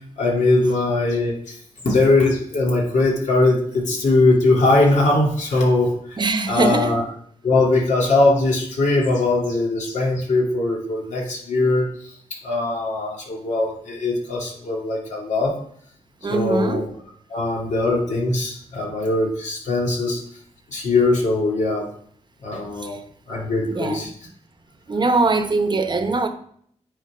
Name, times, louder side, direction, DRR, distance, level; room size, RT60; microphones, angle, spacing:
voice 1, 0.2-1.6 1.8-6.2 6.5-7.0 7.4-12.1 12.4-15.6 16.3-16.9 17.3-20.2 20.7-21.9 22.4-23.0 23.3-24.1, left 2 dB, 70° left, 2.4 m, -20 dB
voice 2, 6.2-7.0 16.2-16.9 22.8-23.0 23.7-24.1 24.9-26.3, right 3 dB, 35° right, 1.0 m, -22 dB
9.3 x 4.2 x 4.9 m
cardioid pair, 85°, 13 cm